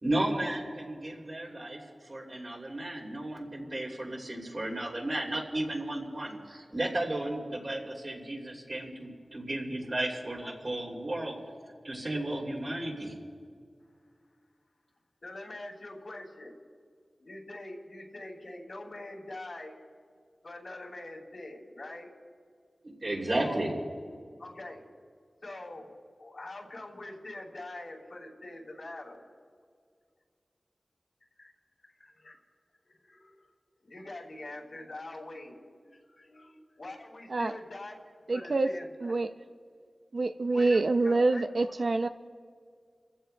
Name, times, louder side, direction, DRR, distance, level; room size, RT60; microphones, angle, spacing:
voice 1, 0.0-11.4 11.8-13.2 22.8-23.7, right 1 dB, 50° right, -2 dB, 2.9 m, -34 dB
voice 2, 10.4-10.8 11.1-11.2 15.2-16.5 17.2-19.8 20.4-22.1 23.3-23.6 24.4-24.9 25.4-25.9 26.2-29.3 31.4-31.5 31.8-32.4 32.9-33.4 33.8-38.0 38.3-38.9 40.5-41.7, left 2 dB, 70° left, -4 dB, 3.3 m, -44 dB
voice 3, 38.3-38.7 39.0-39.3 40.1-42.1, right 3 dB, 65° right, 8 dB, 0.5 m, -26 dB
28.5 x 15.5 x 2.3 m, 2.1 s
wide cardioid pair, 60°, 0 cm